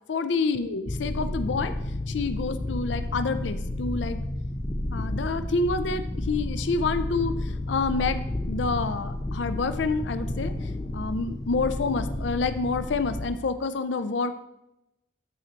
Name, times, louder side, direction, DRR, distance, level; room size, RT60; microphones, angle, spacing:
voice 1, 0.1-1.7 2.1-4.2 4.9-14.3, left 4 dB, 65° left, 11 dB, 0.5 m, -28 dB
sound 1, 0.9-13.3, left 1 dB, 20° left, 0.6 m, -31 dB
13.0 x 4.4 x 4.0 m, 0.88 s
head